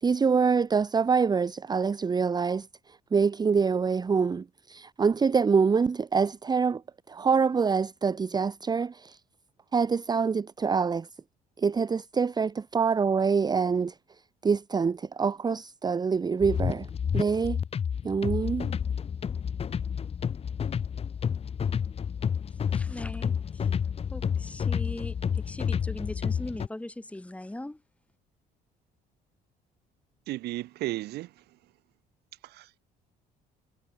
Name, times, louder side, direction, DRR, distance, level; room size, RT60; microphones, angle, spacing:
voice 1, 0.0-2.7 3.1-6.8 7.1-9.2 9.7-11.1 11.6-13.9 14.4-16.9 17.1-17.6 18.0-18.7, right 5 dB, 25° right, 0.8 m, -25 dB
sound 1, 16.4-26.7, left 7 dB, 35° left, 1.1 m, -30 dB
voice 2, 22.7-23.7 24.1-27.8, left 1 dB, 10° left, 2.5 m, -39 dB
voice 3, 30.3-31.3 32.4-32.8, right 17 dB, 75° right, 0.7 m, -34 dB
cardioid pair, 110°, 17 cm